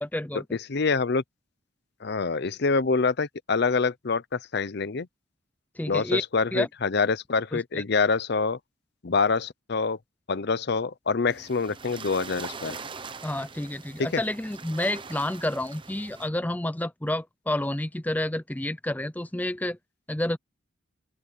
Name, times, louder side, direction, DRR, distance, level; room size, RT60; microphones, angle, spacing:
voice 1, 0.0-0.4 5.8-6.2 6.5-6.7 7.5-7.8 13.2-19.8 20.1-20.4, left 1 dB, 10° left, 0.5 m, -29 dB
voice 2, 0.7-1.2 2.0-5.1 5.9-8.6 9.0-10.0 10.3-12.8 14.0-14.2, left 4 dB, 55° left, 0.6 m, -26 dB
sound 1, 11.3-16.3, right 5 dB, 25° right, 0.8 m, -42 dB
open air
head